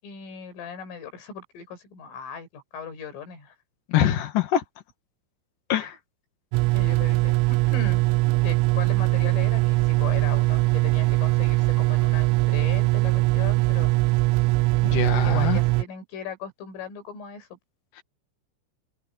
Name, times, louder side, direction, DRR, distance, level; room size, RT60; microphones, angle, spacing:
voice 1, 0.0-3.6 5.8-5.9 6.7-8.0 8.4-13.9 15.2-17.6, left 7 dB, 75° left, 8.4 m, -38 dB
voice 2, 3.9-4.6 5.7-5.9 14.8-15.6 18.0-18.1, left 11 dB, 50° left, 3.1 m, -24 dB
sound 1, 6.5-15.8, right 21 dB, 80° right, 3.0 m, -21 dB
open air
omnidirectional pair, 5.9 m